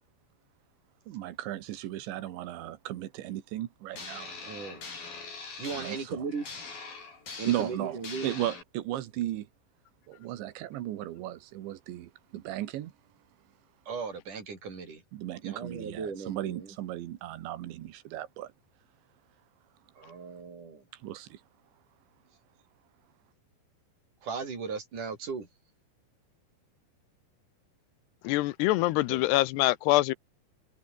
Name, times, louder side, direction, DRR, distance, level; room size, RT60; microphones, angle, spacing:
voice 1, 1.1-4.6 5.7-6.2 7.5-7.9 8.2-9.5 10.1-12.9 15.1-18.5 21.0-21.4, right 14 dB, 85° right, 3.9 m, -36 dB
sound 1, 3.9-8.6, left 4 dB, 55° left, 8.3 m, -43 dB
voice 2, 4.4-4.8 5.6-6.5 7.4-8.3 13.9-15.0 15.4-16.8 20.0-20.8 24.2-25.5 28.8-28.9 29.1-29.3, right 5 dB, 45° right, 7.5 m, -37 dB
voice 3, 28.2-30.1, left 18 dB, 80° left, 2.7 m, -24 dB
omnidirectional pair, 5.1 m